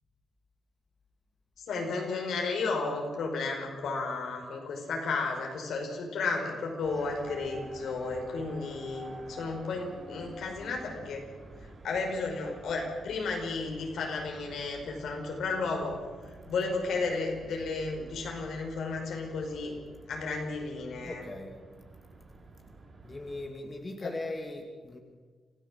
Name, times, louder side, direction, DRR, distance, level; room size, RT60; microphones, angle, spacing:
voice 1, 1.7-11.2 11.8-16.0 16.4-19.7 20.1-21.2 24.0-24.2, left 3 dB, 75° left, 2 dB, 5.1 m, -33 dB
sound 1, 6.8-23.5, right 3 dB, 35° right, 7.6 m, -50 dB
voice 2, 21.0-21.6 23.0-25.0, left 2 dB, 25° left, 3 dB, 2.5 m, -39 dB
27.0 x 15.5 x 7.6 m, 1.5 s
cardioid pair, 95°, 0 cm